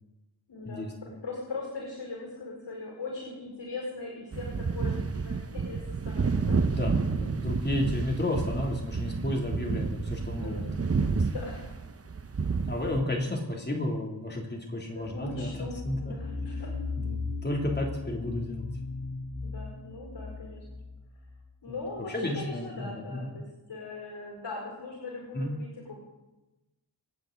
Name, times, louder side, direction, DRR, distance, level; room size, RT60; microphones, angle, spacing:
voice 1, 0.5-6.6 10.3-10.8 11.3-11.7 14.9-15.8 16.0-16.7 19.4-20.6 21.6-26.0, left 3 dB, 70° left, -3 dB, 5.1 m, -40 dB
sound 1, 4.3-13.0, right 4 dB, 35° right, 0.7 m, -30 dB
voice 2, 6.5-11.2 12.7-16.0 17.0-18.7 22.1-23.3 25.3-25.5, left 1 dB, 25° left, -1 dB, 2.9 m, -32 dB
sound 2, 15.0-21.6, left 3 dB, 50° left, 3.3 m, -37 dB
27.5 x 9.5 x 3.9 m, 1.0 s
wide cardioid pair, 105°, 44 cm